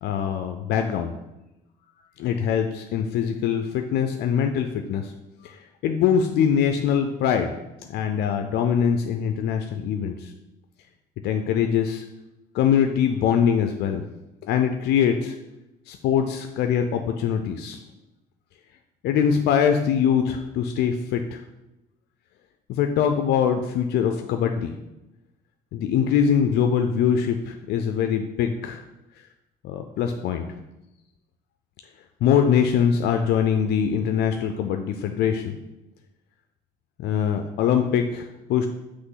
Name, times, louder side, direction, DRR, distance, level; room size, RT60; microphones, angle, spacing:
voice 1, 0.0-1.1 2.2-5.1 5.4-7.5 7.9-10.3 11.2-12.0 12.5-14.0 14.4-15.3 15.9-17.8 19.0-21.4 22.7-24.8 25.7-28.8 29.6-30.4 32.2-35.6 37.0-38.7, left 8 dB, 75° left, 5 dB, 0.5 m, -23 dB
6.0 x 3.1 x 5.6 m, 0.95 s
cardioid pair, 110°, 17 cm